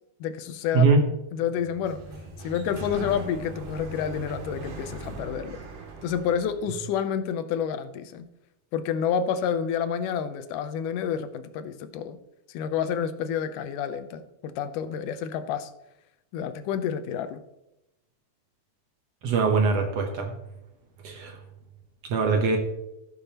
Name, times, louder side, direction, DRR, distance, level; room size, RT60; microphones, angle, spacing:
voice 1, 0.2-0.9 1.3-2.0 2.4-5.6 6.0-8.3 8.7-12.2 12.5-15.7 16.3-17.4, left 8 dB, 85° left, 10 dB, 2.2 m, -29 dB
Sliding door, 1.6-6.7, right 2 dB, 85° right, 3.1 m, -39 dB
voice 2, 19.2-20.4 21.0-21.4 22.1-22.6, right 4 dB, 60° right, 3 dB, 1.8 m, -22 dB
15.5 x 7.0 x 2.9 m, 0.90 s
omnidirectional pair, 3.6 m